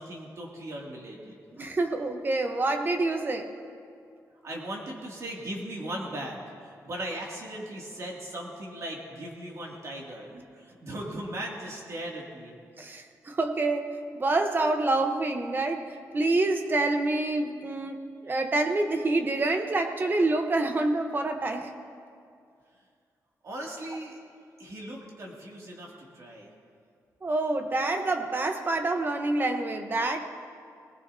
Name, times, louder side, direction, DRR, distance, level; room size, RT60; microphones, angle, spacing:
voice 1, 0.0-1.4 4.4-12.6 23.4-24.2 24.6-26.5, right 1 dB, 50° right, -2 dB, 2.4 m, -38 dB
voice 2, 1.5-3.5 12.8-21.7 27.2-30.3, right 2 dB, 30° right, 6 dB, 0.9 m, -27 dB
20.0 x 19.5 x 2.7 m, 2.3 s
wide cardioid pair, 135°, 6 cm